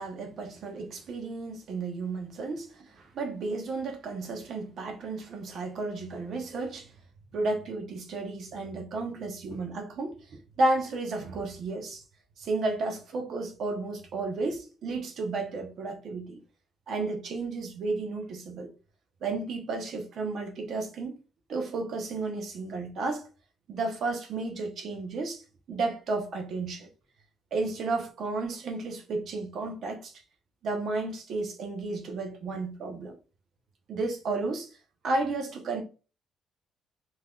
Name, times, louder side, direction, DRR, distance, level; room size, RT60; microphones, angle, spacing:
voice 1, 0.0-6.9 7.3-10.2 10.6-12.0 12.4-16.4 16.9-18.7 19.2-21.2 21.5-23.3 23.7-25.4 25.7-26.9 27.5-30.1 30.6-33.2 33.9-34.7 35.0-35.8, right 3 dB, 65° right, 0.9 m, -32 dB
3.4 x 2.8 x 2.3 m
cardioid pair, 90°, 0 cm